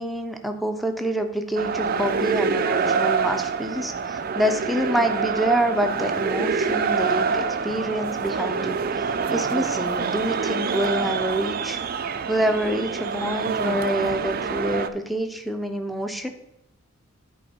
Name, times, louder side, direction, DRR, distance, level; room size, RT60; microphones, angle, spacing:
voice 1, 0.0-11.8 12.3-16.3, right 1 dB, ahead, 5 dB, 0.6 m, -27 dB
sound 1, 1.6-14.9, right 5 dB, 45° right, 0.4 m, -26 dB
10.5 x 4.6 x 4.3 m, 0.88 s
head